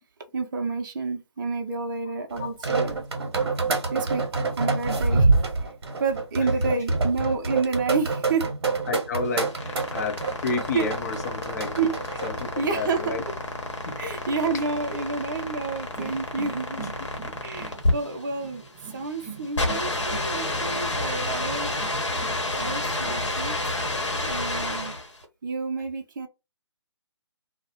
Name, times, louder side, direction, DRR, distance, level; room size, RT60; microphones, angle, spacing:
voice 1, 0.3-3.0 3.9-4.3 4.6-5.3 6.0-8.5 10.7-10.9 11.8-11.9 12.6-13.2 14.0-16.8 17.4-18.6 18.9-21.7 22.6-23.8 24.2-25.0 25.4-26.3, right 4 dB, 45° right, 0.5 m, -29 dB
sound 1, 2.4-12.4, right 3 dB, 60° right, 0.8 m, -26 dB
voice 2, 8.9-11.7 12.2-13.2 13.8-14.0 16.7-16.9, left 4 dB, 35° left, 0.6 m, -31 dB
sound 2, 9.3-25.2, left 2 dB, 85° left, 0.9 m, -30 dB
sound 3, 15.9-23.5, right 5 dB, 5° right, 0.6 m, -43 dB
2.2 x 2.0 x 2.8 m
figure-of-eight pair, 145°, 15 cm